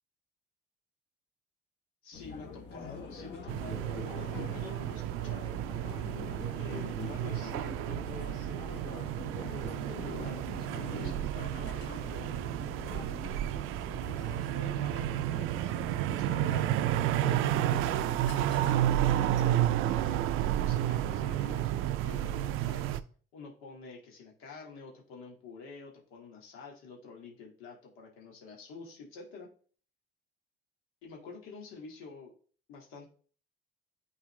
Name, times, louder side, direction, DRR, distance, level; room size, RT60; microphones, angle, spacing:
voice 1, 2.0-5.6 6.6-8.9 9.9-13.1 14.1-15.7 16.1-19.6 20.6-23.0 23.3-29.5 31.0-32.3 32.7-33.1, left 4 dB, 90° left, -1 dB, 1.9 m, -48 dB
sound 1, 2.1-20.2, left 4 dB, 55° left, 1.2 m, -45 dB
sound 2, 3.5-23.0, right 13 dB, 80° right, 0.4 m, -31 dB
8.8 x 4.0 x 3.2 m, 0.44 s
cardioid pair, 115°, 21 cm